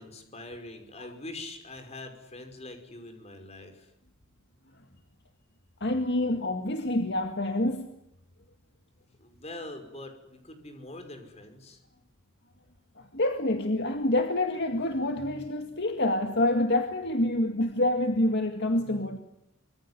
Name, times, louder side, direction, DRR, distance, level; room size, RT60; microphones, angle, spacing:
voice 1, 0.0-3.9 9.2-11.8, left 2 dB, 30° left, 7 dB, 5.5 m, -43 dB
voice 2, 5.8-7.9 13.0-19.2, left 1 dB, 50° left, 6 dB, 2.1 m, -27 dB
25.5 x 23.0 x 9.8 m, 0.80 s
head